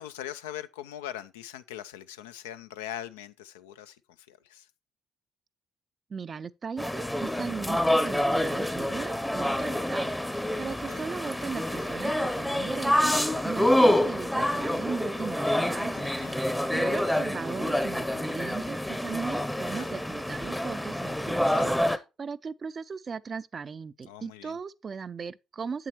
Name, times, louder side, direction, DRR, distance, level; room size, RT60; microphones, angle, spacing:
voice 1, 0.0-4.7 10.6-11.1 15.9-16.4 19.7-20.0 21.5-21.9 24.1-24.6, left 11 dB, 90° left, 0.3 m, -42 dB
voice 2, 6.1-13.1 13.4-16.0 16.3-25.9, right 5 dB, 45° right, 0.4 m, -37 dB
sound 1, 6.8-22.0, left 1 dB, 5° left, 0.6 m, -27 dB
7.6 x 7.4 x 2.9 m
hypercardioid pair, 55°, 0 cm